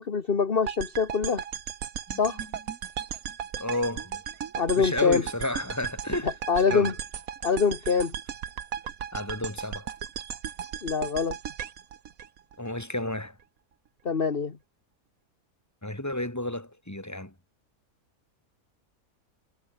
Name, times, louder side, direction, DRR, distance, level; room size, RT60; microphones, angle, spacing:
voice 1, 0.0-1.4 2.2-2.4 4.5-5.2 6.5-6.9 7.4-8.1 10.8-11.4 14.0-14.6, left 5 dB, 40° left, 1.7 m, -24 dB
sound 1, 0.7-12.8, right 8 dB, 70° right, 1.6 m, -36 dB
voice 2, 2.1-2.5 3.6-4.2 4.8-6.9 9.1-9.9 12.6-13.4 15.8-17.3, left 1 dB, 10° left, 3.2 m, -32 dB
omnidirectional pair, 1.5 m